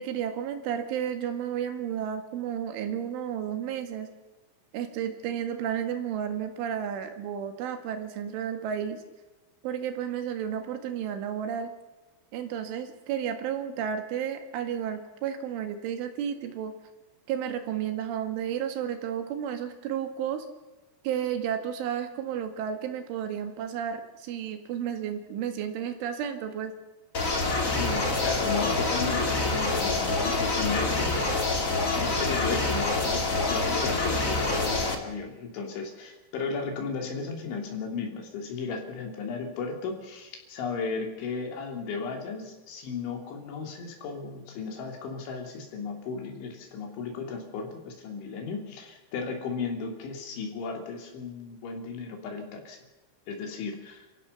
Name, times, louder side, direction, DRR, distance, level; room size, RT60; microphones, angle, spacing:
voice 1, 0.0-4.1 4.7-9.0 9.6-11.7 12.3-16.8 17.3-20.5 21.0-26.7, right 9 dB, 80° right, 7 dB, 4.4 m, -32 dB
sound 1, 27.1-35.0, left 3 dB, 30° left, 1.5 m, -26 dB
voice 2, 27.7-31.4 31.9-52.8 53.3-54.1, left 4 dB, 75° left, 2 dB, 5.7 m, -35 dB
29.5 x 16.0 x 7.0 m, 1.1 s
omnidirectional pair, 5.5 m